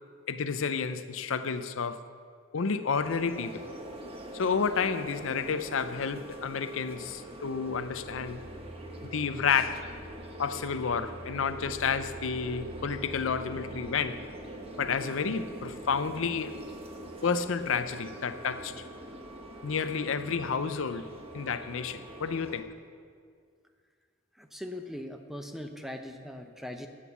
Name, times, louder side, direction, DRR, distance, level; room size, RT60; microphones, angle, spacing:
voice 1, 0.3-2.1 2.5-3.6 4.3-8.4 9.1-9.9 10.4-14.2 14.8-16.7 17.2-18.8 19.6-22.7, left 5 dB, 70° left, 12 dB, 0.5 m, -30 dB
sound 1, 2.9-22.6, right 1 dB, 30° right, 1.1 m, -44 dB
sound 2, 7.1-19.8, right 1 dB, 45° right, 0.7 m, -50 dB
voice 2, 24.3-26.9, left 1 dB, ahead, 5 dB, 0.6 m, -40 dB
11.0 x 8.9 x 7.2 m, 2.1 s
head